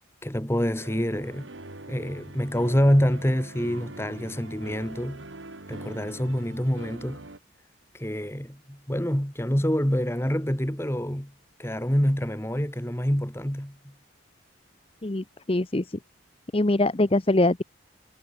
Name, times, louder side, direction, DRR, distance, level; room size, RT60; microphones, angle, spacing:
voice 1, 0.2-1.5 1.9-5.2 5.7-7.2 7.9-11.3 11.6-13.9, equal, 15° left, 2.2 m, -26 dB
sound 1, 0.7-7.4, right 2 dB, 70° right, 2.3 m, -43 dB
voice 2, 15.0-16.0 16.5-17.6, left 2 dB, 30° left, 0.8 m, -23 dB
head